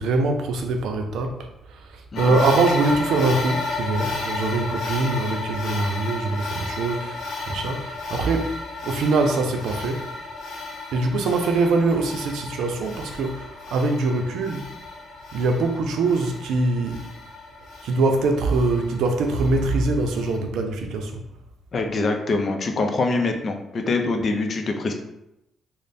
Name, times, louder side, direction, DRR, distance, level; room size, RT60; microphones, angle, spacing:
voice 1, 0.0-8.6 8.8-10.1 10.9-14.6 15.3-17.1 17.8-21.2, right 3 dB, 80° right, 4 dB, 0.5 m, -23 dB
sound 1, 2.2-20.4, left 3 dB, 75° left, 0.8 m, -33 dB
voice 2, 21.7-24.9, left 3 dB, 45° left, 4 dB, 0.5 m, -24 dB
3.2 x 2.1 x 4.0 m, 0.87 s
cardioid pair, 90°, 0 cm